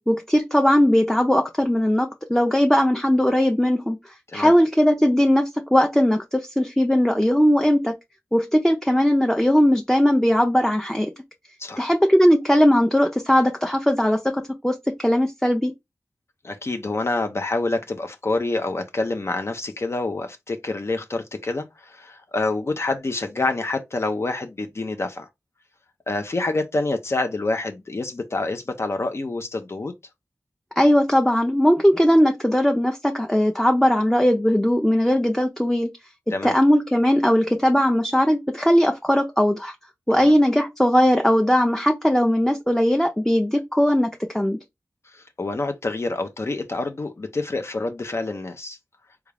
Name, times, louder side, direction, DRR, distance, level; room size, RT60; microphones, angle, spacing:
voice 1, 0.0-7.9 8.3-11.1 11.8-15.7 30.8-35.9 36.4-39.7 40.1-44.1 44.3-44.6, equal, 5° left, 0.5 m, -19 dB
voice 2, 16.4-25.3 26.1-29.9 36.3-36.5 40.1-40.3 45.1-48.8, left 2 dB, 50° left, 0.6 m, -27 dB
3.6 x 2.3 x 3.3 m
cardioid pair, 50°, 6 cm